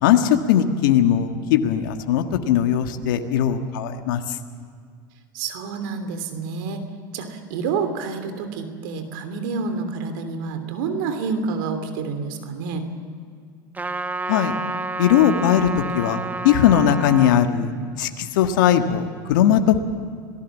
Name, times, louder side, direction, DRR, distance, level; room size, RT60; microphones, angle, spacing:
voice 1, 0.0-4.4 14.3-14.5 15.0-20.0, left 9 dB, 70° left, 6 dB, 1.6 m, -19 dB
voice 2, 5.3-6.8 7.1-12.8, right 5 dB, 70° right, 8 dB, 2.9 m, -28 dB
Trumpet, 13.7-17.5, right 2 dB, 15° right, 1.3 m, -29 dB
27.0 x 18.0 x 7.3 m, 2.2 s
hypercardioid pair, 95°, 11 cm